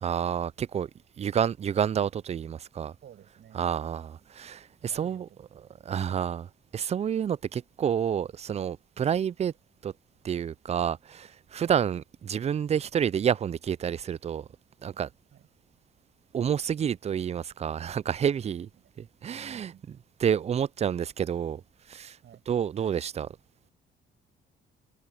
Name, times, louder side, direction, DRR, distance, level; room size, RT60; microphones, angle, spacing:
voice 1, 0.0-0.9 1.2-2.9 3.5-5.3 5.8-9.5 9.8-9.9 10.2-14.5 14.8-15.1 16.3-18.7 19.0-21.6 21.9-22.2 22.5-23.3, right 8 dB, 35° right, 0.4 m, -29 dB
voice 2, 3.0-3.6 4.8-5.4 11.6-11.7 15.3-15.5 18.8-18.9 19.2-19.9 22.2-22.4, right 10 dB, 65° right, 6.7 m, -53 dB
cardioid pair, 90°, 20 cm